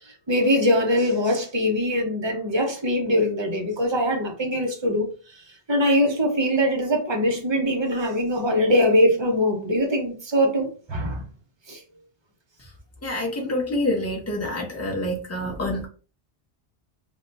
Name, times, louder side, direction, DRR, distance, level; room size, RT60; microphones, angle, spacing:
voice 1, 0.0-5.1 5.3-11.3 11.7-11.8, equal, 30° right, 0.5 m, -22 dB
voice 2, 13.0-15.9, left 1 dB, 15° left, 0.6 m, -27 dB
2.2 x 2.2 x 3.9 m
omnidirectional pair, 1.2 m